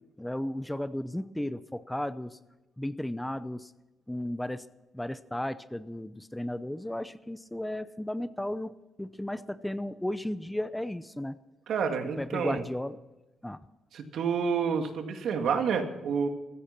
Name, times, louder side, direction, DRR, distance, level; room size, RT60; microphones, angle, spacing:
voice 1, 0.2-2.4 2.8-3.7 4.1-4.6 4.9-11.4 12.2-13.0 13.4-13.6, left 1 dB, 5° left, 14 dB, 0.7 m, -34 dB
voice 2, 11.7-12.6 13.9-16.3, right 6 dB, 70° right, 5 dB, 2.3 m, -29 dB
15.5 x 14.0 x 6.0 m, 1.1 s
cardioid pair, 90°, 0 cm